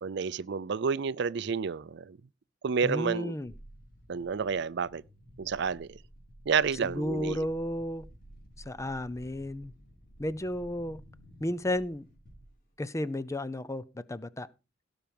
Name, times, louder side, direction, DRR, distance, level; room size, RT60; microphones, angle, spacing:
voice 1, 0.0-2.2 2.6-3.4 4.1-5.0 5.4-6.0 6.5-7.5, right 5 dB, 65° right, 0.5 m, -30 dB
voice 2, 2.8-3.5 6.8-8.1 8.7-9.7 10.2-11.0 11.4-12.0 12.8-14.5, left 1 dB, 15° left, 0.6 m, -33 dB
sound 1, 3.4-12.8, right 1 dB, 50° left, 3.6 m, -53 dB
17.0 x 5.8 x 5.3 m
head